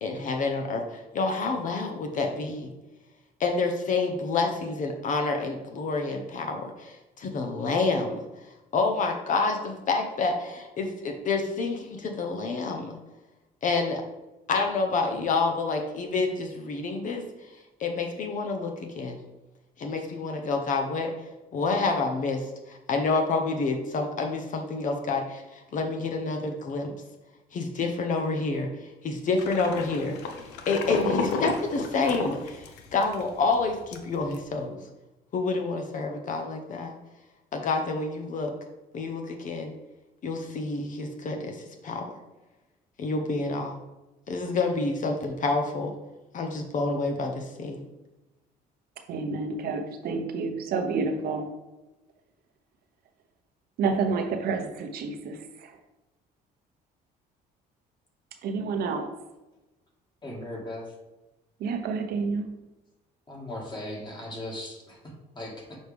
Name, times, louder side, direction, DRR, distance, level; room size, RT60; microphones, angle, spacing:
voice 1, 0.0-2.7 3.4-8.2 8.7-12.9 13.6-14.0 14.5-17.2 17.8-19.2 19.8-21.1 21.5-26.9 27.5-30.3 30.7-34.8 35.3-36.9 37.5-38.5 38.9-39.7 40.2-42.0 43.0-43.8 44.3-45.9 46.3-47.8, left 3 dB, 50° left, 4 dB, 0.8 m, -28 dB
sound 1, 29.4-33.2 33.5-33.6 33.9-34.4, left 4 dB, 85° left, 0.7 m, -31 dB
voice 2, 49.1-51.5 53.8-55.7 58.4-59.1 61.6-62.5, right 4 dB, 65° right, 6 dB, 0.8 m, -29 dB
voice 3, 60.2-60.9 63.3-65.8, left 1 dB, 25° left, -2 dB, 1.9 m, -38 dB
6.3 x 4.7 x 3.5 m, 1.0 s
cardioid pair, 110°, 17 cm